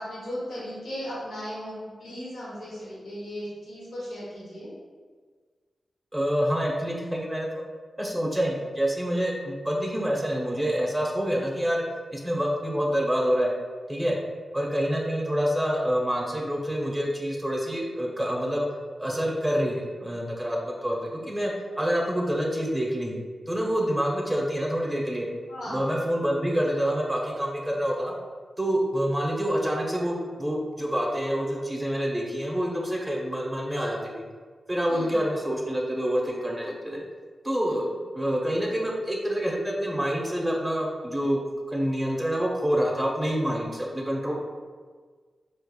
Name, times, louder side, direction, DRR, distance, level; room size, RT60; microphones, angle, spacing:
voice 1, 0.0-1.7 2.0-4.7 25.5-25.9 34.9-35.3 37.6-37.9, equal, 85° left, -8 dB, 1.3 m, -37 dB
voice 2, 6.1-7.6 8.0-11.8 12.1-13.5 13.9-14.2 14.5-18.6 19.0-23.2 23.5-25.3 25.7-28.1 28.6-34.2 34.7-37.0 37.4-37.8 38.1-41.4 41.7-44.3, equal, 10° right, -2 dB, 0.9 m, -27 dB
4.6 x 3.1 x 2.2 m, 1.5 s
cardioid pair, 45°, 0 cm